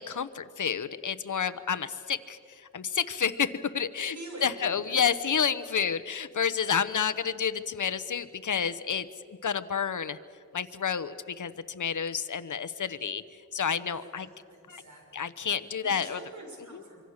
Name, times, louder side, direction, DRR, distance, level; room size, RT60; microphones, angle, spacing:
voice 1, 0.0-2.4 2.7-4.1 4.4-10.2 10.5-13.2 13.5-14.3 14.7-14.8 15.1-16.2, left 7 dB, 75° left, 12 dB, 0.9 m, -30 dB
voice 2, 4.1-4.8 13.6-15.3 15.6-17.0, right 2 dB, 70° right, 0 dB, 6.7 m, -46 dB
25.5 x 24.5 x 6.6 m, 2.2 s
wide cardioid pair, 65°, 30 cm